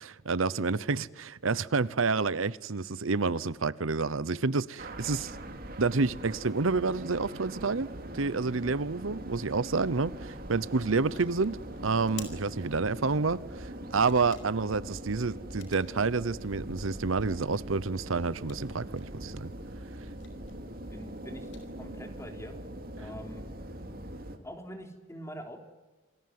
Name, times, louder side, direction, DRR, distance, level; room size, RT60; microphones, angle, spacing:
voice 1, 0.0-5.3 5.8-7.9 8.1-11.6 11.8-19.5, right 4 dB, 80° right, 0.8 m, -29 dB
sound 1, 3.9-22.3, left 8 dB, 60° left, 4.9 m, -57 dB
sound 2, 4.8-24.4, right 1 dB, 45° right, 2.9 m, -42 dB
voice 2, 20.9-21.5 21.8-22.6 23.0-23.4 24.4-25.6, equal, 15° left, 3.6 m, -44 dB
28.0 x 20.5 x 9.6 m
head